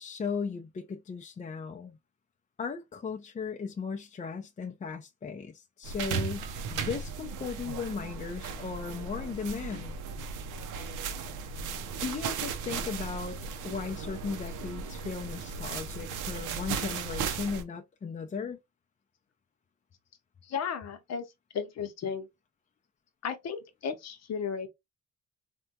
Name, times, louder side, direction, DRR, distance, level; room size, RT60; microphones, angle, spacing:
voice 1, 0.0-2.0 2.6-9.9 12.0-13.4 13.6-18.6, left 5 dB, 25° left, 0.4 m, -36 dB
sound 1, 5.8-17.6, right 5 dB, 85° right, 0.6 m, -36 dB
voice 2, 20.4-21.3 21.5-22.3 23.2-24.7, left 6 dB, 60° left, 0.8 m, -34 dB
3.4 x 2.2 x 2.7 m
cardioid pair, 90°, 30 cm